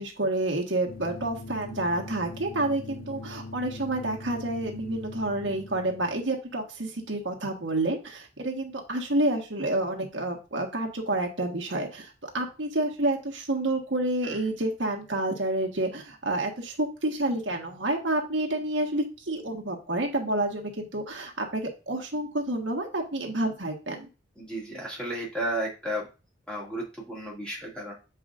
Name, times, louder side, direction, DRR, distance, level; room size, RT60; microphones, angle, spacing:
voice 1, 0.0-24.1, right 1 dB, 80° right, 1 dB, 1.4 m, -29 dB
sound 1, 0.9-6.3, left 2 dB, 55° left, 0.8 m, -42 dB
voice 2, 24.4-26.1 26.5-27.9, right 1 dB, 5° left, -4 dB, 2.3 m, -33 dB
7.8 x 4.8 x 2.6 m, 0.30 s
head